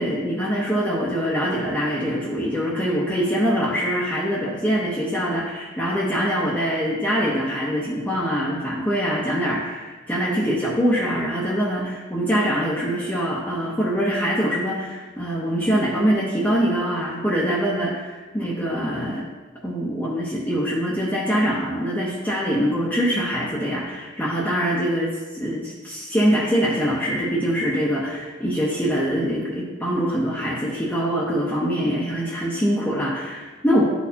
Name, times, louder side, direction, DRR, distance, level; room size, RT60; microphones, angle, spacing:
voice 1, 0.0-19.3 19.6-33.9, equal, 10° left, -7 dB, 0.7 m, -24 dB
11.0 x 4.2 x 2.8 m, 1.3 s
head